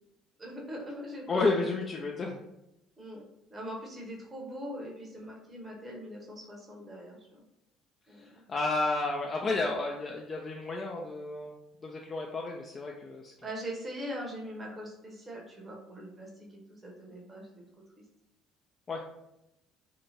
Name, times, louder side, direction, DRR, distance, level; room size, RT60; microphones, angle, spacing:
voice 1, 0.4-1.5 3.0-3.2 3.5-7.4 8.1-8.5 13.4-17.6 18.0-18.1, equal, 30° right, -2 dB, 0.9 m, -42 dB
voice 2, 1.3-2.4 8.2-11.5 11.8-13.3 18.9-19.0, left 3 dB, 35° left, 0 dB, 0.3 m, -31 dB
2.8 x 2.1 x 2.9 m, 0.86 s
hypercardioid pair, 60°, 0 cm